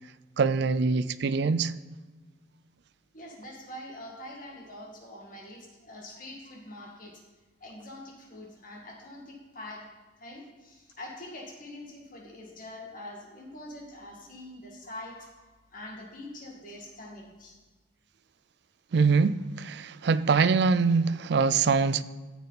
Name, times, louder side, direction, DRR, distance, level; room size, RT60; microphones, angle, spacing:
voice 1, 0.4-1.7 18.9-22.0, right 4 dB, 60° right, 0.4 m, -24 dB
voice 2, 3.1-7.2 7.6-9.8 10.2-15.3 15.7-17.6, left 1 dB, 45° left, 2.0 m, -44 dB
13.5 x 7.1 x 4.0 m
head